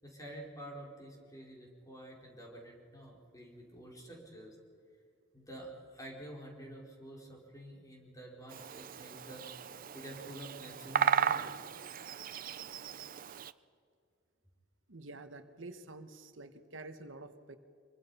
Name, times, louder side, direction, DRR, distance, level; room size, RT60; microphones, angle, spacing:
voice 1, 0.0-4.6 5.3-11.5, right 1 dB, 20° left, -1 dB, 4.6 m, -49 dB
Bird vocalization bird call bird song, 8.5-13.5, right 7 dB, 45° right, 0.6 m, -35 dB
voice 2, 14.9-17.6, right 2 dB, 80° right, 9 dB, 1.4 m, -48 dB
25.5 x 23.0 x 5.6 m, 2.2 s
head